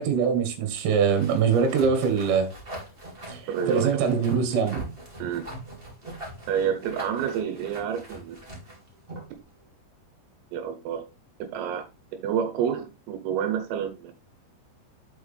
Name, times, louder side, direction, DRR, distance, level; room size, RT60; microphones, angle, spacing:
voice 1, 0.0-2.5 3.3-3.4 3.7-4.8, right 6 dB, 65° right, 3.6 m, -23 dB
sound 1, 1.1-9.4, right 1 dB, 45° right, 0.7 m, -41 dB
voice 2, 3.5-4.1 5.2-5.5 6.5-8.4 9.3-9.4 10.5-11.0 11.4-11.9 12.1-14.1, right 8 dB, 85° right, 3.6 m, -29 dB
8.0 x 6.3 x 3.4 m
omnidirectional pair, 5.9 m